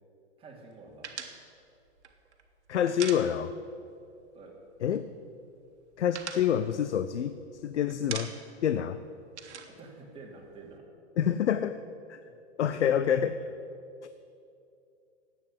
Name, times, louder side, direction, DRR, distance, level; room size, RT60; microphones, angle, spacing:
voice 1, 0.4-1.1 4.3-4.5 9.7-10.8 11.2-11.4 12.2-13.5, right 3 dB, 15° right, -3 dB, 2.8 m, -50 dB
sound 1, 1.0-3.8 4.1-4.3 4.6-5.2 5.6-7.6 7.9-8.6 8.9-10.7, right 7 dB, 75° right, 1.5 m, -42 dB
voice 2, 2.7-3.5 4.8-5.1 6.0-8.3 8.6-9.0 11.2-11.8 12.1-12.2 12.6-13.4, left 9 dB, 80° left, 12 dB, 0.6 m, -27 dB
11.0 x 8.5 x 9.1 m, 2.6 s
hypercardioid pair, 125°, 34 cm